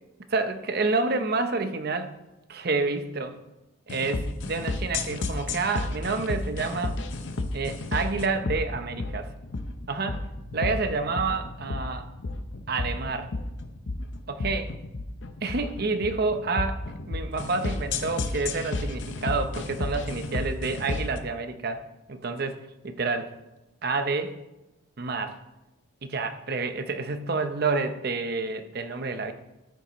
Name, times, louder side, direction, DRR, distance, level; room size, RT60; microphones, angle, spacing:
voice 1, 0.3-2.1 2.5-3.4 3.9-7.0 7.5-9.3 9.9-10.2 10.5-12.1 12.7-13.3 14.3-14.7 15.4-16.8 17.1-21.8 22.1-23.3 23.8-24.3 25.0-25.4 26.0-29.3, right 3 dB, 50° right, 8 dB, 0.7 m, -29 dB
sound 1, 3.9-21.2, left 2 dB, 60° left, 0.7 m, -32 dB
13.5 x 6.9 x 3.0 m, 0.96 s
head